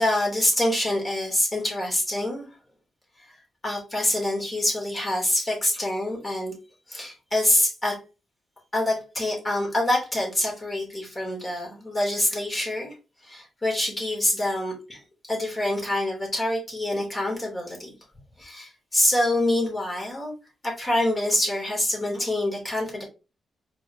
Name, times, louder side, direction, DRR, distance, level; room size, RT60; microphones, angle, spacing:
voice 1, 0.0-2.5 3.2-3.3 3.6-6.5 6.9-8.0 8.7-13.0 13.2-17.9 18.4-20.3 20.6-23.0, left 1 dB, 25° left, -2 dB, 2.5 m, -26 dB
4.7 x 3.4 x 2.6 m, 0.31 s
cardioid pair, 90°, 0 cm